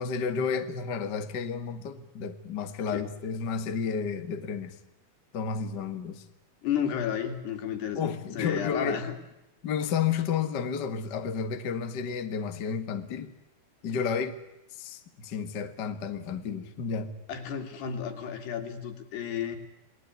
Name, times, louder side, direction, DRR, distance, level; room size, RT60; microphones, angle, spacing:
voice 1, 0.0-4.7 5.3-6.2 7.9-9.0 9.6-13.3 13.8-14.4 14.8-17.1, left 6 dB, 50° left, 1.2 m, -31 dB
voice 2, 6.6-9.2 17.3-19.6, left 8 dB, 80° left, 4.9 m, -32 dB
28.5 x 21.0 x 9.5 m
omnidirectional pair, 4.7 m